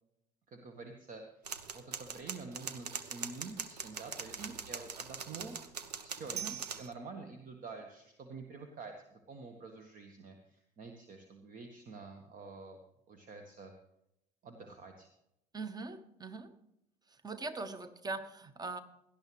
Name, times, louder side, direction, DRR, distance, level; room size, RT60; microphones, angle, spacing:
voice 1, 0.5-1.2 1.7-5.6 6.0-12.8 13.1-13.7 14.4-15.1, right 4 dB, 40° right, 5 dB, 1.4 m, -48 dB
sound 1, 1.5-6.9, right 6 dB, 85° right, 0.8 m, -42 dB
voice 2, 15.5-16.5 17.1-18.8, right 3 dB, 20° right, 12 dB, 1.2 m, -41 dB
17.5 x 12.0 x 3.2 m, 0.81 s
figure-of-eight pair, 55°, 20 cm